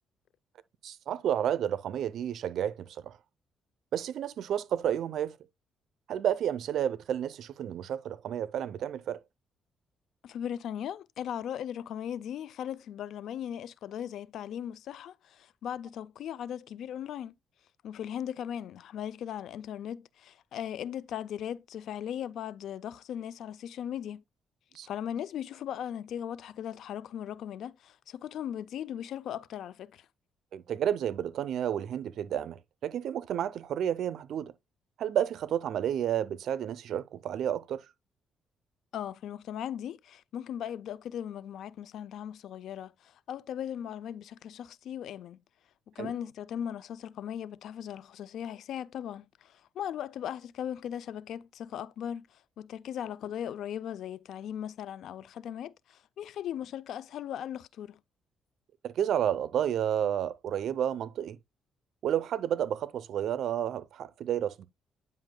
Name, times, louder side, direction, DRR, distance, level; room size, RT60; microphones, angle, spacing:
voice 1, 0.8-3.2 3.9-5.4 6.1-9.2 24.7-24.9 30.5-34.5 35.0-37.8 46.0-46.1 58.8-61.4 62.0-64.7, right 10 dB, 70° right, 0.6 m, -31 dB
voice 2, 10.2-17.3 17.8-24.2 24.8-30.1 38.9-45.4 45.9-58.0, left 9 dB, 75° left, 0.4 m, -38 dB
9.7 x 5.4 x 2.2 m
cardioid pair, 90°, 0 cm